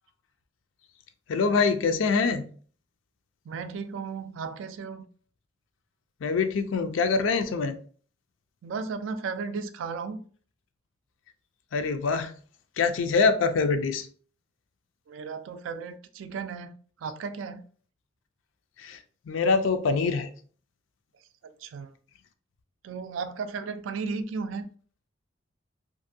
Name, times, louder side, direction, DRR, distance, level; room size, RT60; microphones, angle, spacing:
voice 1, 1.3-2.4 6.2-7.7 11.7-12.3 12.8-14.1 18.8-19.0 19.3-20.3, left 4 dB, 85° left, 0.4 m, -24 dB
voice 2, 3.5-5.1 8.6-10.2 15.1-17.6 21.6-21.9 22.8-24.7, right 5 dB, 80° right, 0.3 m, -35 dB
2.6 x 2.5 x 2.6 m
head